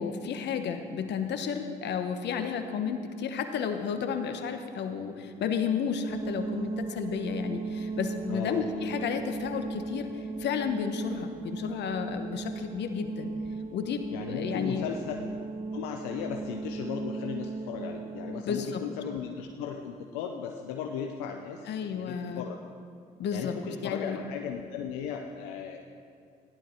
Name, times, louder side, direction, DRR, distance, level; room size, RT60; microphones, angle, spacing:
voice 1, 0.0-13.3 13.7-14.9 18.4-18.8 21.7-22.4 23.2-23.5 23.8-24.3, left 6 dB, 70° left, 7 dB, 1.2 m, -32 dB
sound 1, 6.1-18.4, right 4 dB, 30° right, 0.7 m, -37 dB
voice 2, 8.3-8.6 14.1-15.1 15.7-22.6 23.3-25.8, left 8 dB, 90° left, 3 dB, 0.7 m, -36 dB
15.5 x 11.5 x 4.5 m, 2.4 s
hypercardioid pair, 55°, 19 cm